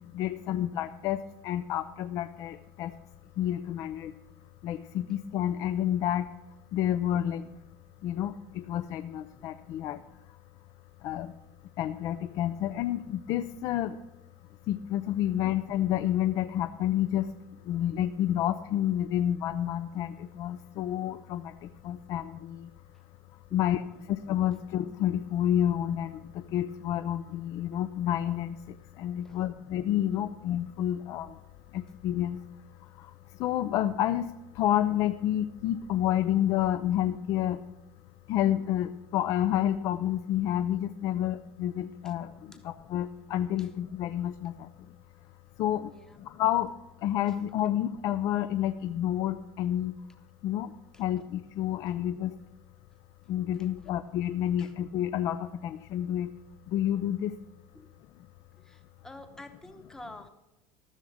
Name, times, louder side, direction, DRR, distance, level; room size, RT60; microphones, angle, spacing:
voice 1, 0.1-2.9 3.4-4.1 4.6-6.3 6.7-7.4 8.0-10.0 11.0-11.3 11.8-13.9 14.7-17.2 17.7-20.1 20.4-21.4 21.8-22.6 23.5-23.8 24.1-26.2 26.5-28.6 29.0-31.3 31.7-32.4 33.4-34.2 34.6-37.6 38.3-42.3 42.6-44.5 45.6-45.9 46.4-46.7 47.0-49.9 50.4-50.7 51.0-52.3 53.3-56.3 56.7-57.3, left 11 dB, 40° left, 11 dB, 0.4 m, -29 dB
voice 2, 45.9-46.2 47.3-47.4 50.9-51.0 51.9-52.0 53.8-54.0 54.6-54.7 57.7-57.9 58.6-60.3, left 2 dB, 5° left, 8 dB, 0.9 m, -49 dB
14.0 x 6.9 x 6.3 m, 1.0 s
cardioid pair, 175°, 9 cm